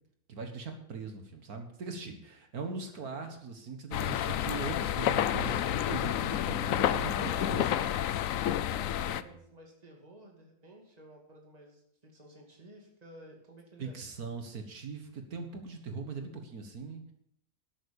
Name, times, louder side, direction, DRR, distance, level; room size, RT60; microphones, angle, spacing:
voice 1, 0.3-7.9 9.0-9.1 13.8-17.1, right 4 dB, 65° right, 5 dB, 2.0 m, -40 dB
sound 1, 3.9-9.2, left 11 dB, 65° left, 0.9 m, -30 dB
voice 2, 8.3-14.0, right 1 dB, 25° right, 0 dB, 2.6 m, -53 dB
11.5 x 8.6 x 7.0 m, 0.73 s
omnidirectional pair, 1.7 m